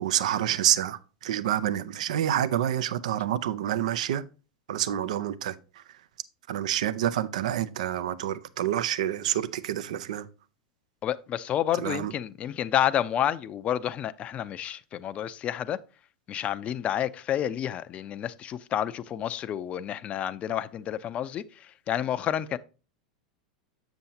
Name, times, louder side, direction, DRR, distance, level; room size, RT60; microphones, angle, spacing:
voice 1, 0.0-4.2 4.7-5.8 6.5-10.3 11.8-12.1, right 11 dB, 70° right, 0.5 m, -28 dB
voice 2, 11.0-15.8 16.3-22.6, left 10 dB, 35° left, 0.5 m, -30 dB
7.6 x 7.0 x 2.8 m
hypercardioid pair, 95°, 4 cm